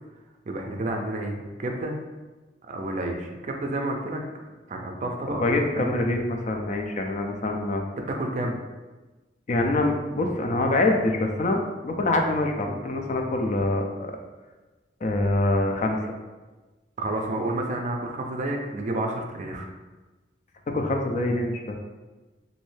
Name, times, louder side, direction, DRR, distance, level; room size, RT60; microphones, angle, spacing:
voice 1, 0.5-1.9 2.6-4.2 4.7-5.5 5.7-5.9 8.1-8.6 17.0-19.7, right 1 dB, 40° right, 2 dB, 0.4 m, -30 dB
voice 2, 5.3-7.8 9.5-14.1 15.0-16.1 20.7-21.8, left 2 dB, 40° left, 3 dB, 0.4 m, -25 dB
3.1 x 2.6 x 3.1 m, 1.2 s
head